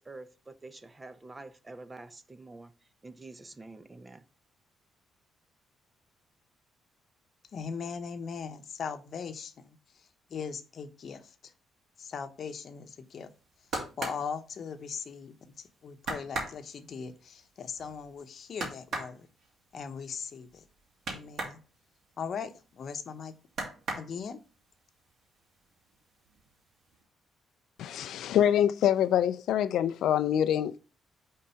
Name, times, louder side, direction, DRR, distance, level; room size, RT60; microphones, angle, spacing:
voice 1, 0.0-2.7 3.0-4.2, right 2 dB, 25° right, 0.6 m, -47 dB
voice 2, 7.5-11.5 12.0-13.3 14.0-19.3 19.7-20.6 21.1-21.6 22.2-23.3 24.0-24.4, left 6 dB, 55° left, 0.8 m, -39 dB
sound 1, 13.3-15.3 15.6-15.7 16.0-21.6 22.0-23.1 23.5-24.6 25.0-25.6 25.9-26.6 26.9-27.0, right 2 dB, 60° right, 2.3 m, -38 dB
voice 3, 27.8-30.8, left 10 dB, 80° left, 0.3 m, -25 dB
5.4 x 3.7 x 5.6 m
cardioid pair, 90°, 0 cm